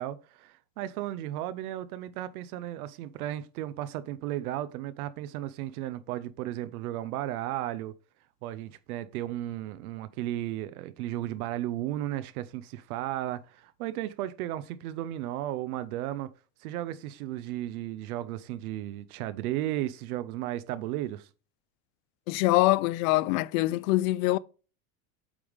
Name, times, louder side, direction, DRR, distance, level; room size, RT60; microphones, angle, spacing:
voice 1, 0.0-7.9 8.4-16.3 16.6-21.3, right 13 dB, 80° right, 0.8 m, -34 dB
voice 2, 22.3-24.4, left 18 dB, 70° left, 0.6 m, -24 dB
8.4 x 3.6 x 4.9 m
supercardioid pair, 155°, 43 cm